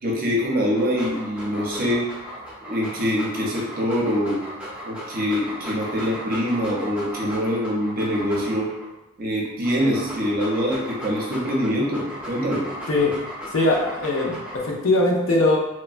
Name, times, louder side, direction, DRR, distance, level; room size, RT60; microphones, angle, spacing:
voice 1, 0.0-2.1 2.6-4.4 4.8-8.7 9.2-12.7, equal, 45° right, -3 dB, 0.6 m, -24 dB
Dog, 0.7-8.9 9.5-14.9, equal, 5° right, 0.6 m, -36 dB
voice 2, 12.9-13.2 13.5-15.6, left 2 dB, 70° left, -1 dB, 0.5 m, -21 dB
3.1 x 2.1 x 2.4 m, 0.94 s
head